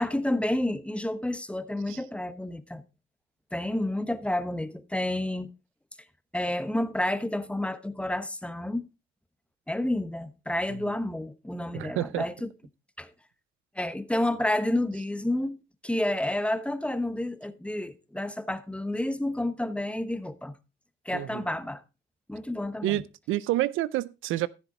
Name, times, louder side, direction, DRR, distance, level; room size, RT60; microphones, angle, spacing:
voice 1, 0.0-2.8 3.5-5.5 6.3-8.8 9.7-12.5 13.0-13.1 13.8-20.6 21.0-21.8 22.3-23.0, left 1 dB, 5° left, 1.0 m, -30 dB
voice 2, 11.7-12.3 21.1-21.4 22.8-24.5, right 15 dB, 85° right, 0.5 m, -29 dB
14.0 x 7.1 x 3.9 m
cardioid pair, 90°, 20 cm